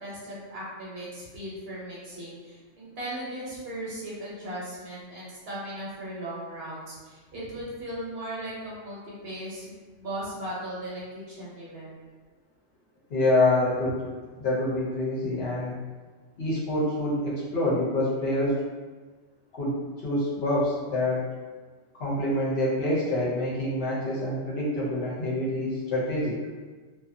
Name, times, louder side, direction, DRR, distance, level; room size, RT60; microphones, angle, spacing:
voice 1, 0.0-11.9, right 1 dB, 55° right, -7 dB, 0.9 m, -37 dB
voice 2, 13.1-14.0 14.4-15.7 16.4-18.6 19.5-19.8 20.0-21.3 22.0-26.4, left 1 dB, 60° left, -6 dB, 0.8 m, -26 dB
2.6 x 2.3 x 2.5 m, 1.4 s
omnidirectional pair, 1.3 m